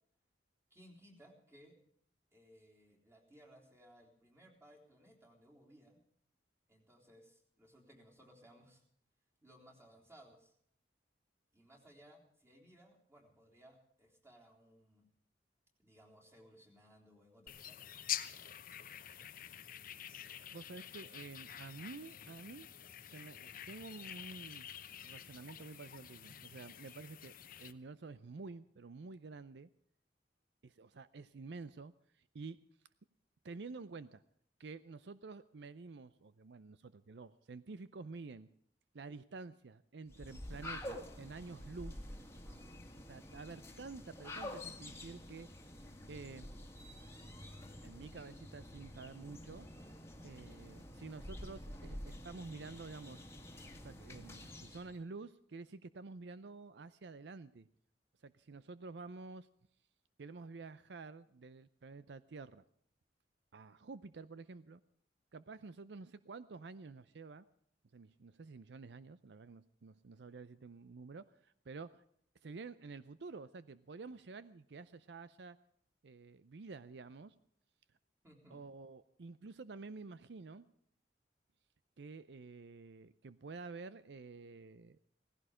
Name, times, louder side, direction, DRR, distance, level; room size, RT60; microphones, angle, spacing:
voice 1, 0.7-1.8 2.3-6.0 6.7-8.8 9.4-10.5 11.5-15.1 15.8-18.0 42.4-42.8 78.2-78.6, equal, 15° right, -1 dB, 3.6 m, -62 dB
sound 1, 17.5-27.7, left 10 dB, 50° left, 0.9 m, -47 dB
voice 2, 20.0-22.7 23.0-24.7 25.0-27.3 27.6-29.7 30.6-32.6 33.4-34.2 34.6-38.5 38.9-42.1 43.1-45.5 46.1-46.5 47.8-49.7 50.2-53.2 53.8-57.7 58.2-59.5 60.2-62.6 63.5-64.8 65.3-67.4 67.9-72.0 72.4-75.6 76.0-77.3 78.5-80.7 82.0-85.0, right 4 dB, 70° right, 15 dB, 0.6 m, -50 dB
sound 2, 40.1-55.0, left 1 dB, 15° left, 1.8 m, -49 dB
17.5 x 16.0 x 4.9 m, 0.64 s
head